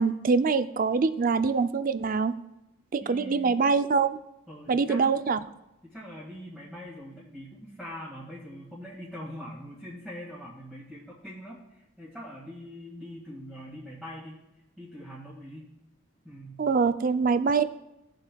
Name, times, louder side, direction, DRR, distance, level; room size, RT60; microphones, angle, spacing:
voice 1, 0.0-2.3 2.9-4.2 4.7-5.4 16.6-17.6, right 5 dB, 40° right, 12 dB, 0.4 m, -24 dB
voice 2, 3.0-3.6 4.5-5.1 5.8-14.4 14.8-15.6 16.2-16.6, equal, 5° left, -9 dB, 1.8 m, -43 dB
16.5 x 7.7 x 2.3 m, 0.90 s
head